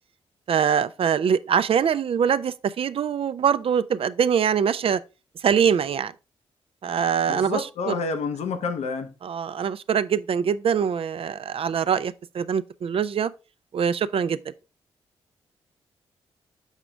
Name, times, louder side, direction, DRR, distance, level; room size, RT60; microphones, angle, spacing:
voice 1, 0.5-5.0 5.4-6.1 6.8-7.9 9.2-13.3 13.7-14.5, right 7 dB, 55° right, 0.4 m, -23 dB
voice 2, 7.3-9.1, left 4 dB, 75° left, 0.8 m, -29 dB
7.3 x 4.9 x 3.3 m
supercardioid pair, 45°, 11 cm